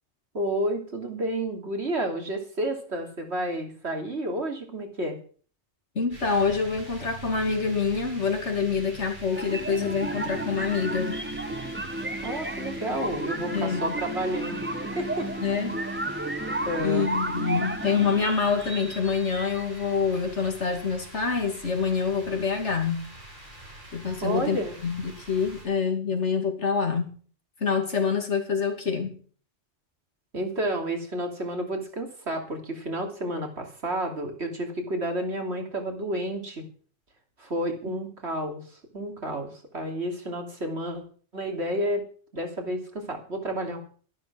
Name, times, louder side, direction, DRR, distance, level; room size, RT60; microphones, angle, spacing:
voice 1, 0.3-5.2 12.2-14.7 15.0-15.3 16.6-17.0 24.2-24.7 30.3-36.6 37.4-41.0 41.3-42.0 42.3-43.8, right 1 dB, 70° right, 3 dB, 3.1 m, -30 dB
voice 2, 5.9-11.2 13.5-13.9 15.4-15.8 16.8-23.1 23.9-27.2 27.6-29.2, left 5 dB, 80° left, 5 dB, 2.9 m, -26 dB
sound 1, 6.1-25.7, right 2 dB, 45° right, 5.9 m, -45 dB
sound 2, 9.3-19.9, right 1 dB, 10° right, 0.9 m, -33 dB
13.0 x 11.0 x 6.1 m, 0.43 s
omnidirectional pair, 1.2 m